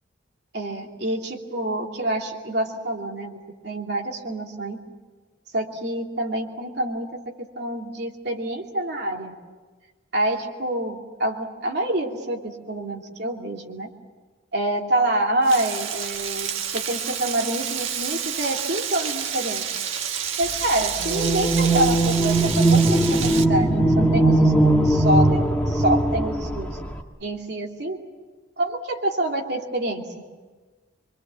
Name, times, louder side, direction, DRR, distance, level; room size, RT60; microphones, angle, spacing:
voice 1, 0.5-3.4 3.6-4.8 5.5-7.2 7.6-9.3 10.1-13.9 14.5-19.7 20.4-26.8 27.2-28.0 28.6-30.0, right 1 dB, 55° right, 1 dB, 2.9 m, -27 dB
Frying (food), 15.4-23.4, right 8 dB, 85° right, 1.5 m, -29 dB
sound 1, 21.0-27.0, right 2 dB, 5° left, 1.6 m, -19 dB
25.5 x 24.5 x 7.7 m, 1.3 s
head